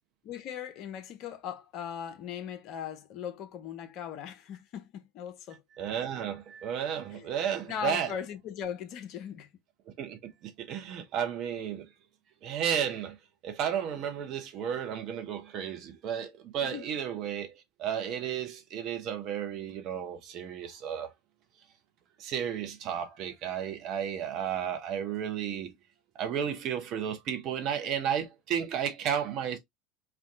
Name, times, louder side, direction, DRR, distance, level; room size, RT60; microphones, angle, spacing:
voice 1, 0.2-5.6 7.1-7.3 7.7-9.5 16.6-16.9, left 8 dB, 45° left, 0.5 m, -39 dB
voice 2, 5.8-8.1 10.0-11.9 12.4-13.2 13.4-21.1 22.2-25.8 26.2-29.6, right 8 dB, 40° right, 0.6 m, -33 dB
2.6 x 2.1 x 2.5 m
figure-of-eight pair, 75°, 0 cm